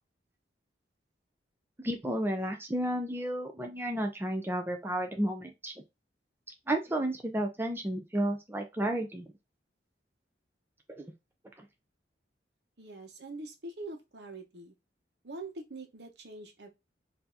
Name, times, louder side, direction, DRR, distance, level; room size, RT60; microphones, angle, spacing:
voice 1, 1.8-5.7 6.7-9.3 11.0-11.1, right 1 dB, 15° right, 0.6 m, -32 dB
voice 2, 12.8-14.7 15.2-16.7, right 2 dB, 65° right, 1.1 m, -44 dB
4.5 x 2.8 x 3.9 m
head